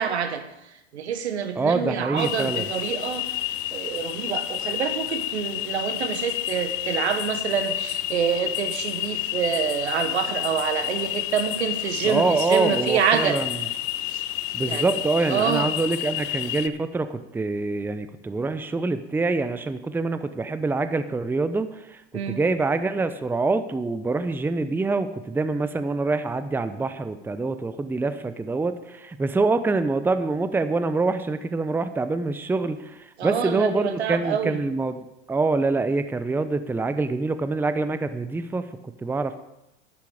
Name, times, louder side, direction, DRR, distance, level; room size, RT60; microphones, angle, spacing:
voice 1, 0.0-3.3 3.7-13.4 14.1-14.2 14.6-14.9 15.3-15.7 22.1-22.4 33.2-34.6, right 7 dB, 85° right, 9 dB, 1.4 m, -27 dB
voice 2, 1.6-2.7 12.0-13.7 14.5-22.0 22.3-39.4, right 3 dB, 5° right, 11 dB, 0.6 m, -25 dB
sound 1, 2.2-16.7, left 15 dB, 55° left, 0.8 m, -30 dB
11.5 x 10.5 x 4.9 m, 0.90 s
hypercardioid pair, 95°, 32 cm